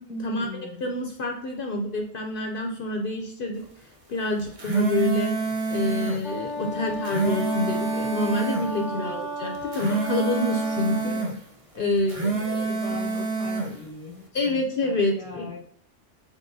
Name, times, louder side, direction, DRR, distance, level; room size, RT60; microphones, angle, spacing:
voice 1, 0.1-0.9 6.6-7.1 8.7-9.3 10.9-11.4 11.7-15.6, left 2 dB, 5° right, -2 dB, 1.1 m, -39 dB
voice 2, 0.8-3.7 4.1-5.4 5.7-11.2 11.7-12.7 14.3-15.5, left 1 dB, 60° left, 3 dB, 0.8 m, -27 dB
sound 1, 4.4-6.2 6.9-8.7 9.5-11.3 12.0-13.7, right 3 dB, 35° right, 0.8 m, -27 dB
Wind instrument woodwind instrument, 6.2-11.1, left 1 dB, 30° left, 0.9 m, -34 dB
4.6 x 4.3 x 2.6 m, 0.68 s
omnidirectional pair, 1.1 m